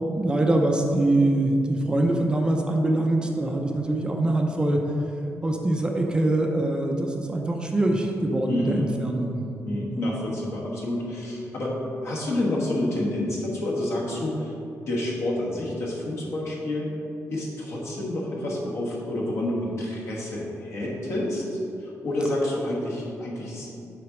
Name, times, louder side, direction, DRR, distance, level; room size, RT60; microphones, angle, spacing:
voice 1, 0.1-4.8 5.4-10.1, right 1 dB, 15° right, 1 dB, 0.5 m, -24 dB
voice 2, 8.5-8.9 9.7-14.5 14.8-17.0 17.3-23.8, left 1 dB, 60° left, -3 dB, 1.4 m, -29 dB
6.4 x 3.9 x 6.0 m, 2.7 s
wide cardioid pair, 165°, 5 cm